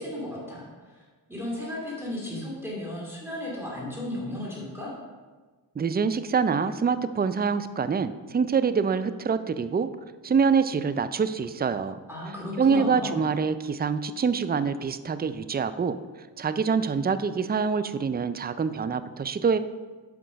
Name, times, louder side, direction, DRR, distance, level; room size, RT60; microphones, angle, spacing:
voice 1, 0.0-4.9 12.1-13.2, left 1 dB, 5° right, -6 dB, 2.4 m, -35 dB
voice 2, 5.8-9.9 10.2-12.0 12.6-16.0 16.4-19.6, right 5 dB, 25° right, 12 dB, 0.4 m, -25 dB
5.9 x 5.5 x 5.1 m, 1.3 s
cardioid pair, 40°, 43 cm